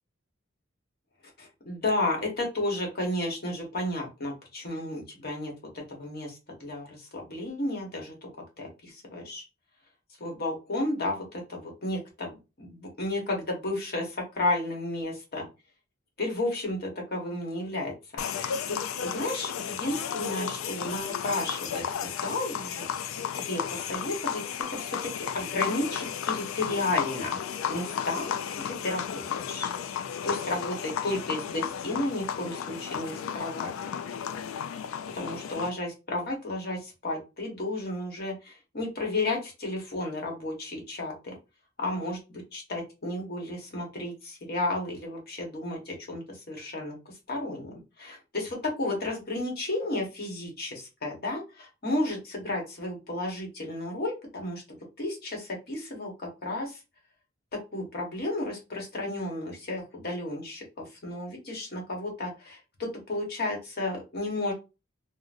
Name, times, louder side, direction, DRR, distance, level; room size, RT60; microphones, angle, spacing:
voice 1, 1.4-5.5 5.9-8.1 8.6-9.4 10.2-15.5 16.2-17.9 18.4-24.4 24.7-25.0 25.3-27.4 27.7-28.3 28.6-29.7 30.2-33.7 35.1-41.3 41.8-46.9 47.3-56.8 57.7-64.5, left 2 dB, 50° left, 0 dB, 1.1 m, -33 dB
sound 1, 18.2-35.7, left 8 dB, 75° left, 0.3 m, -33 dB
3.7 x 2.0 x 2.5 m, 0.29 s
head